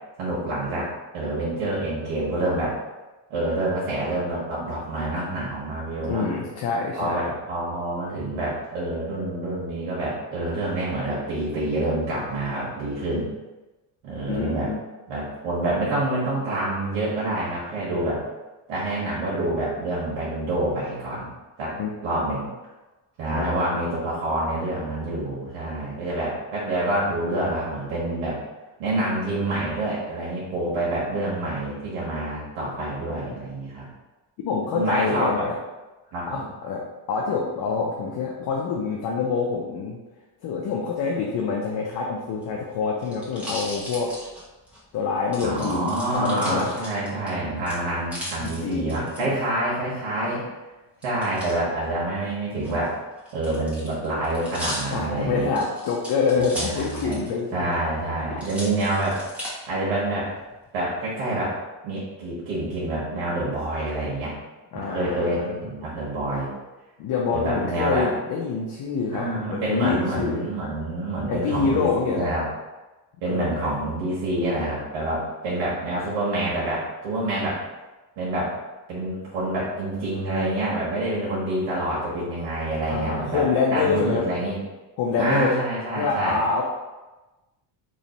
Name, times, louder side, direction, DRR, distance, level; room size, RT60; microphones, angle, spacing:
voice 1, 0.2-0.9 1.1-2.8 3.3-6.3 6.9-13.3 14.0-14.7 15.1-18.2 18.7-21.3 21.6-21.7 22.0-22.5 23.2-28.4 28.8-33.9 34.7-35.5 36.1-36.4 45.4-50.4 51.0-53.0 53.3-55.5 56.4-57.2 57.5-59.2 59.7-60.3 60.7-61.6 61.8-64.3 64.7-66.5 67.3-68.1 69.1-72.4 73.2-77.6 78.2-78.5 78.9-83.4 83.7-84.6 85.2-86.6, right 1 dB, 90° right, -7 dB, 1.3 m, -27 dB
voice 2, 6.0-7.3 14.2-14.8 21.8-21.9 23.3-23.6 33.3-33.4 34.4-35.6 36.2-40.0 40.4-44.1 44.9-46.7 48.4-49.4 54.9-57.8 58.3-58.4 64.7-65.6 67.0-70.4 71.3-72.3 73.2-73.9 82.8-84.3 85.0-85.6 85.9-86.6, left 5 dB, 55° left, -2 dB, 0.7 m, -26 dB
sound 1, 42.3-44.8 45.3-47.3 47.6-49.2 51.0-51.5 52.5-57.4 57.7-57.8 58.4-59.5 60.1-60.7, equal, 5° right, 1.1 m, -37 dB
3.1 x 2.8 x 4.1 m, 1.1 s
cardioid pair, 120°, 46 cm